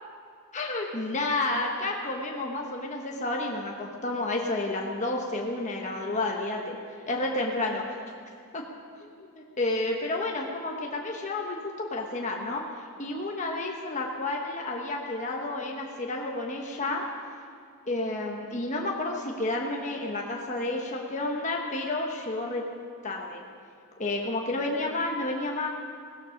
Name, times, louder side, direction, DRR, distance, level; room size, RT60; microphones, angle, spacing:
voice 1, 0.5-6.8 7.1-8.0 8.5-8.6 9.4-12.6 13.0-17.0 17.9-22.6 23.0-23.4 24.0-25.7, left 2 dB, 35° left, 0 dB, 1.2 m, -30 dB
17.0 x 13.5 x 5.2 m, 2.3 s
head